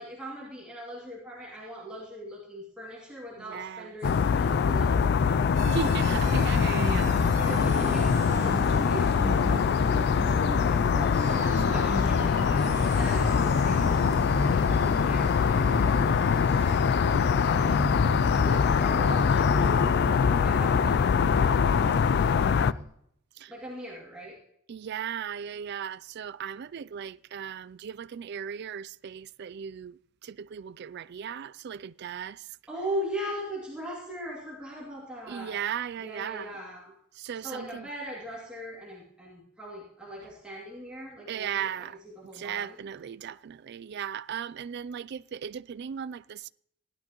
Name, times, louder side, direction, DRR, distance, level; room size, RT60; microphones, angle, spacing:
voice 1, 0.0-5.5 6.2-6.5 7.4-11.4 11.7-16.8 17.5-17.9 18.3-21.7 23.5-24.4 32.7-35.7 36.0-36.9 37.4-41.9 42.2-42.8, equal, 5° right, 2.6 m, -40 dB
voice 2, 3.4-3.9 5.7-7.2 11.4-12.0 23.4-23.5 24.7-32.5 35.3-36.6 37.2-37.9 41.3-42.0 42.3-46.5, right 8 dB, 55° right, 0.3 m, -37 dB
sound 1, 4.0-22.7, left 6 dB, 55° left, 0.3 m, -23 dB
sound 2, 5.5-22.8, right 1 dB, 35° right, 2.2 m, -37 dB
17.0 x 12.0 x 3.0 m
head